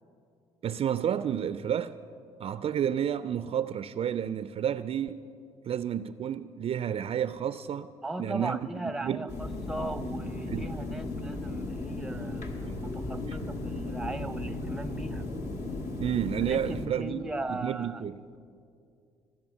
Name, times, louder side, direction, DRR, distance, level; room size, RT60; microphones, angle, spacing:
voice 1, 0.6-2.0 2.4-5.3 5.6-7.9 8.2-9.3 10.5-10.7 12.6-12.8 13.2-13.4 16.0-18.2, right 9 dB, 45° right, 0.4 m, -31 dB
voice 2, 8.0-12.5 12.8-15.3 16.5-18.0, right 2 dB, 5° right, 0.7 m, -38 dB
sound 1, 9.3-16.9, left 2 dB, 60° left, 1.8 m, -36 dB
20.0 x 7.6 x 6.9 m
hypercardioid pair, 55°, 14 cm